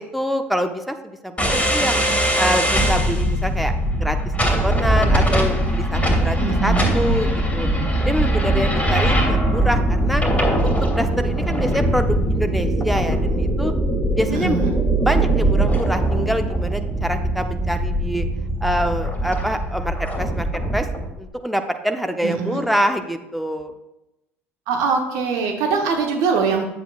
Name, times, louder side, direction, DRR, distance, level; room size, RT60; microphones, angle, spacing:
voice 1, 0.0-2.0 2.4-4.2 4.4-7.7 8.0-10.2 10.6-13.7 14.2-14.6 15.0-18.3 18.6-20.9 21.2-23.7, equal, ahead, 5 dB, 0.8 m, -25 dB
sound 1, 1.4-21.1, right 1 dB, 20° left, 2.7 m, -21 dB
voice 2, 6.4-6.9 14.3-14.7 22.2-22.6 24.7-26.6, right 5 dB, 60° right, 2 dB, 1.1 m, -22 dB
10.0 x 7.9 x 2.4 m, 0.93 s
figure-of-eight pair, 60°, 7 cm